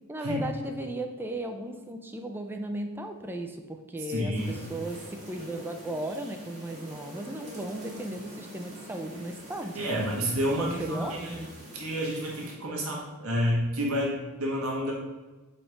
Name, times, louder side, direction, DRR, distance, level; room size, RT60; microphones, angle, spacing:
voice 1, 0.1-10.1 10.6-11.5, right 1 dB, 10° right, 5 dB, 0.4 m, -36 dB
voice 2, 4.1-4.6 9.7-11.4 11.7-14.9, equal, 70° right, -3 dB, 1.2 m, -29 dB
sound 1, 4.3-12.5, equal, 30° right, 1.7 m, -45 dB
4.4 x 4.1 x 5.1 m, 1.2 s
head